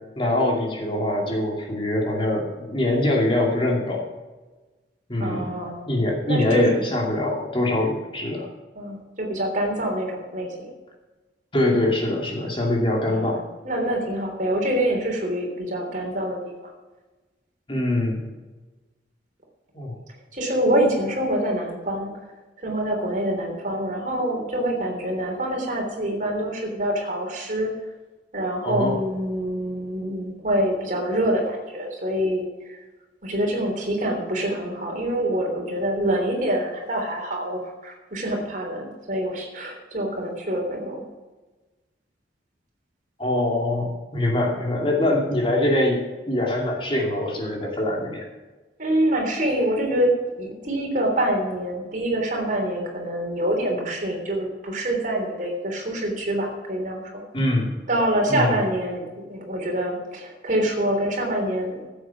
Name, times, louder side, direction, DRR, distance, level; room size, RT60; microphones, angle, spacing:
voice 1, 0.2-4.1 5.1-5.5 5.9-8.5 11.5-13.4 17.7-18.2 19.7-19.9 28.6-29.0 43.2-46.0 46.3-48.3 57.3-57.7 58.3-58.6, left 1 dB, 30° left, -1 dB, 2.6 m, -23 dB
voice 2, 5.2-5.8 6.2-6.8 8.7-10.5 13.1-13.4 13.6-16.4 20.3-22.1 22.6-27.7 28.3-32.8 33.2-41.0 48.8-50.1 50.4-57.2 57.9-59.0 59.3-61.9, right 1 dB, 45° right, 1 dB, 3.3 m, -25 dB
15.0 x 8.1 x 5.8 m, 1.2 s
head